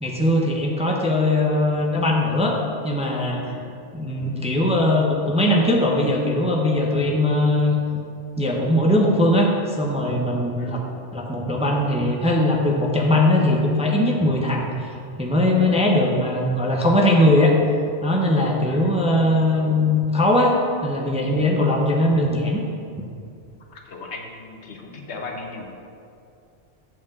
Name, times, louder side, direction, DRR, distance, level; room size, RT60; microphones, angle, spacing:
voice 1, 0.0-2.6 2.8-3.4 3.9-7.8 8.4-10.8 11.1-14.9 15.2-17.5 18.0-22.6, left 1 dB, 5° right, -1 dB, 0.7 m, -20 dB
voice 2, 23.7-25.7, left 3 dB, 70° left, 1 dB, 1.3 m, -37 dB
7.9 x 4.6 x 7.2 m, 2.5 s
omnidirectional pair, 1.2 m